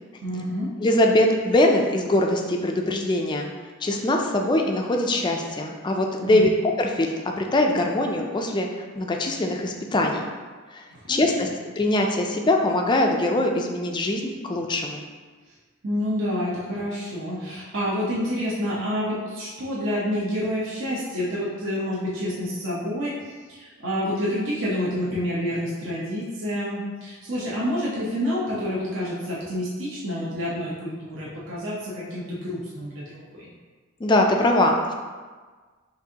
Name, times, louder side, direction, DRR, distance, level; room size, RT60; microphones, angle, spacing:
voice 1, 0.2-0.7 6.2-6.6 10.9-11.5 15.8-23.1 23.5-33.5, equal, 60° right, -7 dB, 0.8 m, -28 dB
voice 2, 0.8-3.5 3.8-8.7 9.0-10.3 10.7-11.5 11.8-15.0 34.0-34.9, left 1 dB, 20° left, 2 dB, 0.3 m, -22 dB
6.0 x 2.6 x 2.8 m, 1.4 s
head